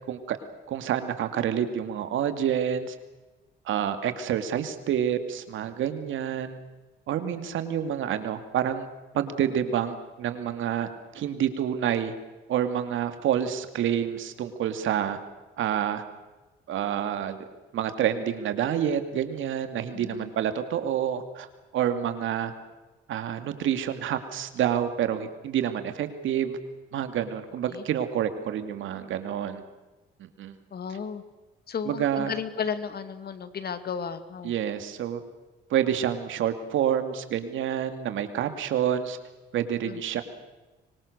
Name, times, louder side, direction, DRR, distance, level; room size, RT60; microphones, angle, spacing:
voice 1, 0.7-3.0 3.7-6.6 7.1-8.9 9.1-10.9 11.1-12.1 12.5-15.2 15.6-16.0 16.7-17.4 17.7-21.5 21.7-22.5 23.1-26.6 26.9-29.6 30.2-30.5 31.8-32.3 34.4-35.2 35.7-39.2 39.5-40.2, right 9 dB, 80° right, 9 dB, 2.5 m, -28 dB
voice 2, 19.9-20.3 27.7-27.8 30.7-31.2 31.7-34.5 39.8-40.0, left 6 dB, 50° left, 11 dB, 2.3 m, -34 dB
24.5 x 24.5 x 6.8 m, 1.2 s
cardioid pair, 90°, 20 cm